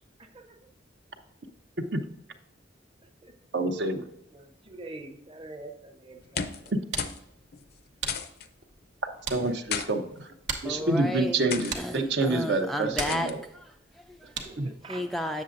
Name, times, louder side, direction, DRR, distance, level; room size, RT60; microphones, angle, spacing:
voice 1, 0.2-0.7 3.2-3.3 4.3-6.7 12.1-12.7 13.1-13.3 14.4-15.0, right 2 dB, 30° right, 4 dB, 0.7 m, -45 dB
voice 2, 3.5-4.0 9.3-10.3 10.6-13.4 14.6-14.7, right 2 dB, 65° right, 6 dB, 0.7 m, -27 dB
sound 1, 6.2-6.7 7.0-7.2 7.5-7.6 8.1-8.5 9.4-9.9 10.6-10.9 11.5-11.8 13.0-13.3, left 7 dB, 55° left, 0.5 m, -33 dB
sound 2, 6.5-14.8, right 5 dB, 90° right, 1.0 m, -41 dB
voice 3, 10.6-11.4 11.8-14.4 14.9-15.4, equal, ahead, 4 dB, 0.3 m, -33 dB
7.6 x 7.0 x 2.6 m, 0.82 s
head